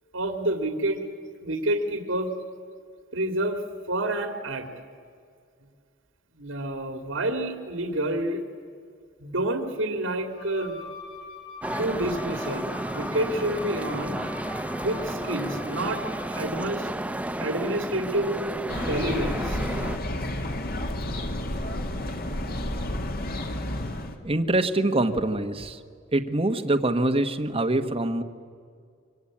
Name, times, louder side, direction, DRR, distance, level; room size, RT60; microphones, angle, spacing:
voice 1, 0.1-1.0 1.4-2.3 3.1-3.6 3.9-4.7 6.4-8.4 9.2-10.8 11.7-14.2 14.8-16.0 16.4-16.9 17.4-19.6, right 1 dB, 75° right, 6 dB, 2.4 m, -28 dB
Wind instrument woodwind instrument, 10.3-16.6, left 4 dB, 75° left, 7.0 m, -43 dB
sound 1, 11.6-20.0, right 1 dB, 5° right, 0.7 m, -32 dB
sound 2, 18.7-24.2, left 1 dB, 50° left, 2.3 m, -31 dB
voice 2, 24.2-25.8 26.1-28.2, right 2 dB, 30° right, 6 dB, 1.3 m, -24 dB
26.0 x 23.5 x 8.7 m, 2.2 s
head